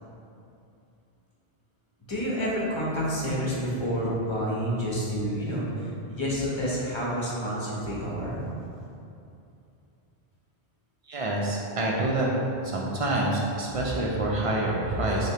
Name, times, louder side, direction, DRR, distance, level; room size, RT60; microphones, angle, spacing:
voice 1, 2.1-8.4, equal, 30° left, -6 dB, 0.8 m, -29 dB
voice 2, 11.1-12.3 12.6-15.3, right 1 dB, 60° right, -4 dB, 0.3 m, -27 dB
6.4 x 2.2 x 2.8 m, 2.7 s
omnidirectional pair, 1.1 m